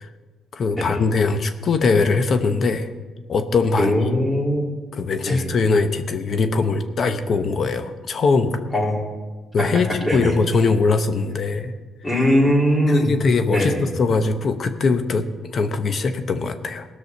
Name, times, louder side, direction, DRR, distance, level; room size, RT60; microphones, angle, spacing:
voice 1, 0.5-2.9 3.3-4.1 4.9-8.7 9.5-11.7 12.9-16.8, left 4 dB, 50° left, 9 dB, 0.9 m, -21 dB
voice 2, 3.8-4.7 5.3-5.4 8.7-9.0 9.6-9.7 10.0-10.3 12.0-13.2 13.5-13.8, equal, 20° left, -3 dB, 3.7 m, -20 dB
18.0 x 6.3 x 5.3 m, 1.4 s
cardioid pair, 90°, 0 cm